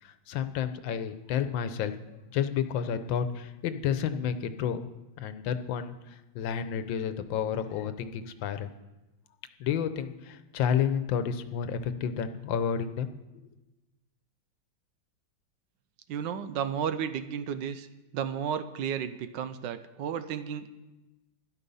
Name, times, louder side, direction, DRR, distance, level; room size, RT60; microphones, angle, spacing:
voice 1, 0.0-4.9 5.2-8.7 9.6-13.1, left 8 dB, 85° left, 11 dB, 1.5 m, -31 dB
voice 2, 16.1-17.9 18.1-20.7, right 8 dB, 75° right, 11 dB, 1.3 m, -33 dB
12.5 x 11.0 x 5.5 m, 1.1 s
omnidirectional pair, 2.1 m